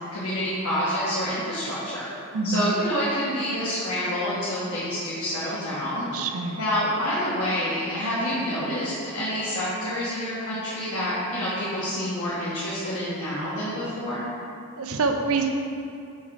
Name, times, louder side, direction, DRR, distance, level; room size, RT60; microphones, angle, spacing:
voice 1, 0.1-2.0 2.4-6.1 6.6-14.2, equal, 75° left, -10 dB, 1.3 m, -28 dB
voice 2, 2.3-2.7 6.1-6.6 14.8-15.5, right 4 dB, 70° right, 5 dB, 0.6 m, -25 dB
4.9 x 4.6 x 5.6 m, 2.6 s
head